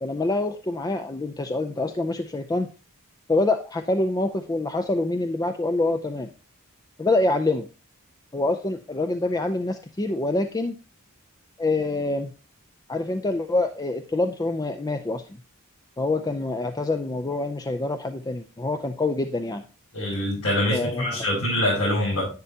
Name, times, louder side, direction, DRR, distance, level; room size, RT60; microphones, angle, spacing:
voice 1, 0.0-2.7 3.3-6.3 7.0-7.7 8.3-10.8 11.6-12.3 12.9-15.2 16.0-19.6 20.7-21.3, left 2 dB, 15° left, 7 dB, 0.4 m, -26 dB
voice 2, 19.9-22.3, left 1 dB, 70° left, -7 dB, 5.9 m, -24 dB
10.5 x 9.8 x 2.8 m, 0.35 s
head